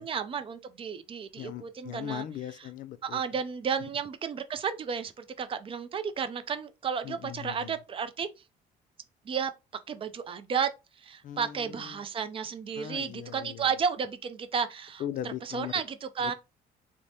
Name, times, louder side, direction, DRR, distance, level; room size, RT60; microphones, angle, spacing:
voice 1, 0.0-2.3 3.1-8.3 9.3-9.5 9.9-10.7 11.0-15.0 15.4-16.3, right 6 dB, 35° right, 0.4 m, -32 dB
voice 2, 1.4-3.2 7.0-7.8 11.2-12.0 12.7-13.7 15.0-15.8 16.2-16.3, left 11 dB, 50° left, 0.4 m, -39 dB
3.1 x 2.1 x 2.6 m
cardioid pair, 110°, 17 cm